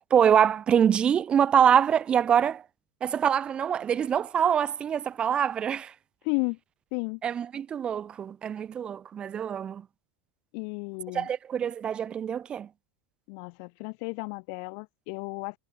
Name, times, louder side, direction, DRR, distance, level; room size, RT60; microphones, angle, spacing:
voice 1, 0.0-2.6 3.0-5.9 7.2-9.8 11.1-12.7, right 8 dB, 25° right, 0.4 m, -24 dB
voice 2, 6.2-6.6 6.9-7.2 10.5-11.3 13.3-15.6, left 40 dB or more, 55° left, 0.6 m, -33 dB
supercardioid pair, 130°, 4 cm